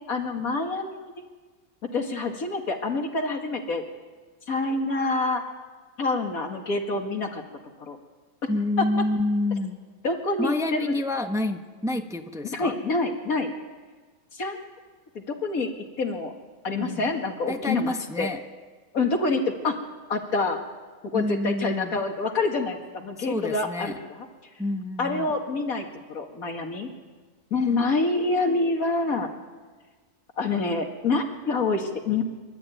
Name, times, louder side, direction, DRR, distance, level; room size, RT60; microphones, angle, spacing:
voice 1, 0.1-1.1 1.9-3.8 4.5-5.4 6.0-7.4 7.8-8.0 10.0-11.0 12.4-13.5 14.3-14.6 15.1-15.7 16.0-16.3 16.6-18.3 18.9-19.8 20.1-20.6 21.1-24.3 25.0-26.9 27.5-29.3 30.4-32.2, left 3 dB, 90° left, 3 dB, 2.5 m, -27 dB
voice 2, 8.5-9.8 10.4-12.7 16.8-17.2 17.5-18.4 21.1-22.0 23.2-24.0 24.6-25.3 27.7-28.1 28.5-28.6, left 2 dB, 5° right, 6 dB, 0.9 m, -28 dB
26.0 x 12.5 x 9.3 m, 1.4 s
omnidirectional pair, 1.4 m